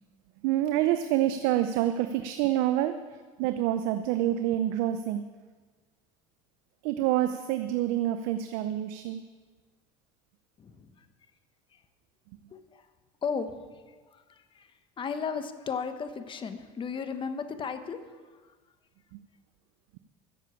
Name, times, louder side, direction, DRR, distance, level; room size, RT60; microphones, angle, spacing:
voice 1, 0.4-5.3 6.8-9.2 19.1-19.2, right 12 dB, 70° right, 9 dB, 0.7 m, -27 dB
voice 2, 10.6-10.9 12.5-12.8 13.2-13.5 14.1-14.7 15.0-18.0, left 6 dB, 30° left, 9 dB, 1.3 m, -34 dB
14.0 x 7.4 x 8.4 m, 1.4 s
hypercardioid pair, 90°, 16 cm